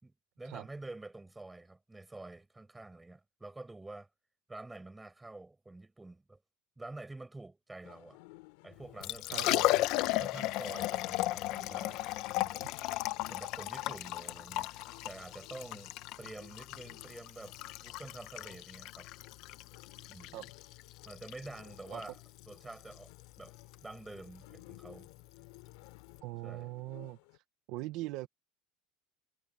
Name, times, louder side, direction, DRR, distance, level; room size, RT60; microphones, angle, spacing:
voice 1, 0.0-4.1 4.5-6.4 6.8-8.2 8.6-9.6 10.2-12.1 12.3-12.6 13.3-17.6 17.8-19.1 20.1-20.4 21.1-22.2 22.5-23.1 23.4-23.5 23.8-25.1 26.4-26.7, right 2 dB, 5° right, 5.8 m, -48 dB
sound 1, 7.8-27.4, left 23 dB, 65° left, 3.1 m, -59 dB
Liquid, 8.8-26.2, left 17 dB, 45° left, 0.9 m, -36 dB
voice 2, 9.3-9.8 20.3-20.5 21.9-22.0 26.2-27.4 27.7-28.3, right 18 dB, 45° right, 1.0 m, -41 dB
cardioid pair, 175°, 0 cm